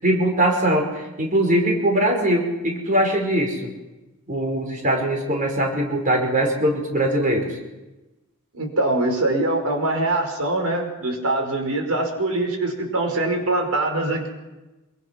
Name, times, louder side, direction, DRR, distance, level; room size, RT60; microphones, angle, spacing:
voice 1, 0.0-3.7 4.3-7.6, right 1 dB, 35° right, 2 dB, 5.1 m, -21 dB
voice 2, 8.5-14.3, right 2 dB, 85° right, 3 dB, 5.4 m, -23 dB
26.5 x 24.5 x 6.0 m, 1.1 s
head